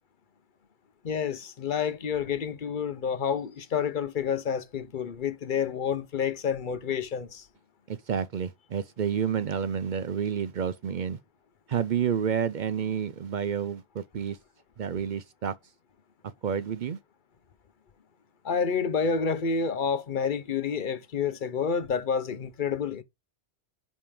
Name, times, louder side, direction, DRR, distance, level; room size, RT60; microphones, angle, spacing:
voice 1, 1.0-7.5 18.4-23.0, left 6 dB, 50° left, 0.8 m, -29 dB
voice 2, 7.9-11.2 11.7-14.4 14.8-15.5 16.4-17.0, right 7 dB, 55° right, 0.6 m, -29 dB
5.5 x 5.2 x 4.8 m
omnidirectional pair, 1.2 m